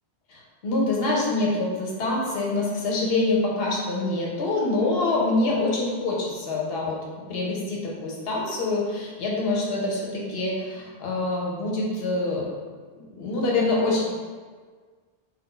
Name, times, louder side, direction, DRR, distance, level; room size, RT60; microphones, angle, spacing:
voice 1, 0.3-7.0 7.3-12.5 12.9-14.0, left 2 dB, 70° left, -3 dB, 0.9 m, -25 dB
2.6 x 2.3 x 3.6 m, 1.5 s
omnidirectional pair, 1.1 m